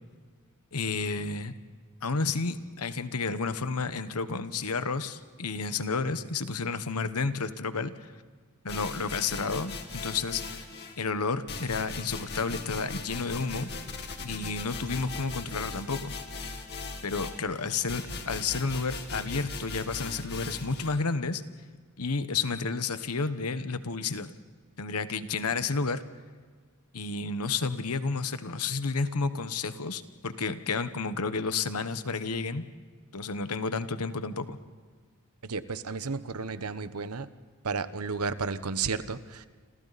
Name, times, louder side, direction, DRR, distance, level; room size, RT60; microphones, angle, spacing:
voice 1, 0.7-1.5 2.0-8.1 8.6-10.7 11.0-13.7 14.2-16.2 17.0-21.4 22.0-24.3 24.8-26.0 26.9-32.7 33.1-34.6, left 4 dB, 85° left, 11 dB, 1.2 m, -31 dB
sound 1, 8.7-11.0 11.5-21.0, left 4 dB, 50° left, 2.2 m, -39 dB
voice 2, 35.4-37.3 37.6-39.5, right 4 dB, 80° right, 12 dB, 1.0 m, -32 dB
29.5 x 27.0 x 4.2 m, 1.6 s
head